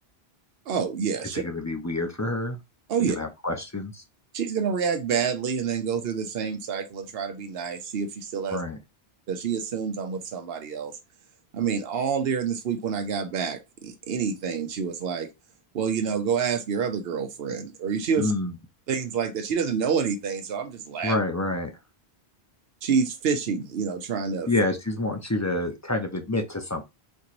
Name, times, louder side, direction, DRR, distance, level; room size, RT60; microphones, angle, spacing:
voice 1, 0.7-1.4 2.9-3.2 4.3-8.6 9.3-11.0 11.5-15.3 15.7-18.3 18.9-21.2 22.8-24.5, right 6 dB, 75° right, 0.9 m, -28 dB
voice 2, 1.3-2.6 3.0-4.0 8.5-8.8 18.2-18.5 21.0-21.7 24.5-26.8, left 2 dB, 20° left, 0.5 m, -28 dB
4.4 x 3.0 x 2.5 m
omnidirectional pair, 1.0 m